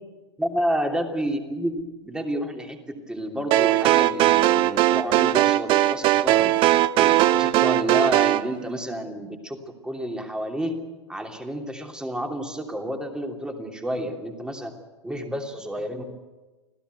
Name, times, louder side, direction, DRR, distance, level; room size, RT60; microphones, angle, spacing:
voice 1, 0.4-9.6 9.8-10.8 11.1-14.7 15.0-16.0, equal, 5° right, 3 dB, 3.0 m, -30 dB
sound 1, 3.5-8.4, right 14 dB, 35° right, 0.7 m, -19 dB
26.0 x 16.5 x 8.1 m, 1.2 s
figure-of-eight pair, 100°, 15 cm